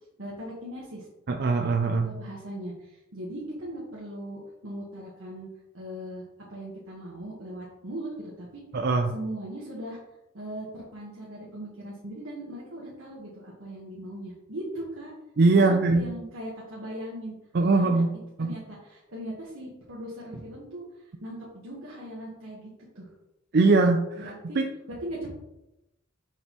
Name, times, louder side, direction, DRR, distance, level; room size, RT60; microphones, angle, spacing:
voice 1, 0.2-1.1 2.0-5.5 5.7-8.6 9.1-10.0 10.3-15.1 15.5-17.3 17.7-18.0 18.4-22.7 22.9-23.1 24.2-24.6 24.9-25.3, right 1 dB, 80° right, -5 dB, 1.4 m, -39 dB
voice 2, 1.3-2.1 8.7-9.1 15.4-16.1 17.5-18.1 18.4-18.5 23.5-24.7, right 3 dB, 50° right, 4 dB, 0.4 m, -22 dB
6.5 x 5.3 x 3.1 m, 0.92 s
head